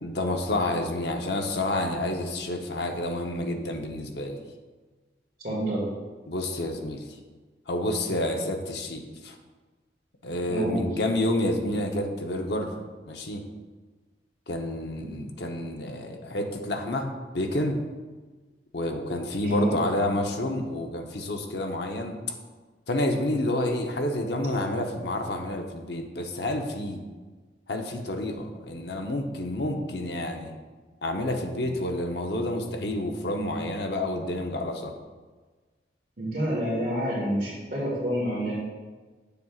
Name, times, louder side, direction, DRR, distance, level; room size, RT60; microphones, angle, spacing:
voice 1, 0.0-4.4 6.3-7.0 7.7-9.4 10.2-12.7 13.1-13.4 14.5-17.8 18.7-22.2 22.9-27.0 27.7-30.5 31.0-34.9, left 1 dB, 65° left, 3 dB, 0.8 m, -29 dB
voice 2, 5.4-5.9 10.5-10.9 19.4-19.7 36.2-38.5, equal, 50° right, -9 dB, 2.0 m, -28 dB
8.9 x 6.8 x 2.4 m, 1.3 s
head